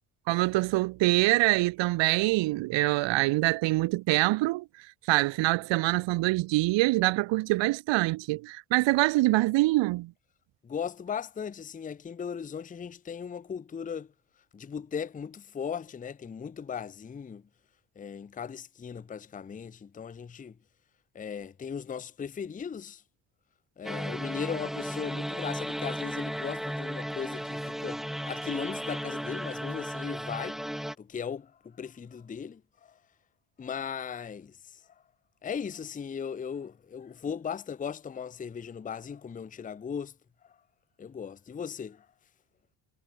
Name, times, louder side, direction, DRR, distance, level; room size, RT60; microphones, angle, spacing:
voice 1, 0.3-4.6 5.1-10.1, right 20 dB, 75° right, 0.5 m, -25 dB
voice 2, 10.6-14.1 14.5-17.4 18.0-20.6 21.1-23.0 23.8-30.7 31.0-32.9 33.6-34.6 35.4-40.1 41.0-42.1, left 7 dB, 20° left, 0.5 m, -37 dB
sound 1, 23.8-30.9, equal, ahead, 1.3 m, -35 dB
cardioid pair, 130°, 45 cm